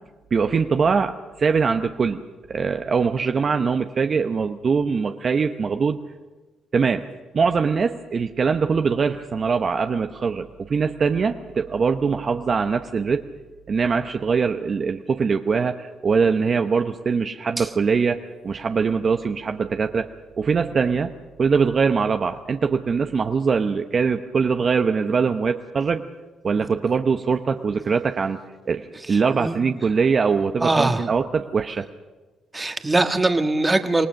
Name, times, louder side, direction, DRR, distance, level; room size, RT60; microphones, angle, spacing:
voice 1, 0.3-2.2 2.5-6.0 6.7-7.1 7.3-13.2 13.7-20.1 20.4-21.1 21.4-26.1 26.4-28.4 28.7-31.9, right 5 dB, 45° right, 6 dB, 0.9 m, -22 dB
voice 2, 29.1-29.6 30.6-31.0 32.5-34.1, right 2 dB, 20° right, 7 dB, 1.6 m, -22 dB
26.5 x 18.5 x 6.5 m, 1.3 s
cardioid pair, 90°, 0 cm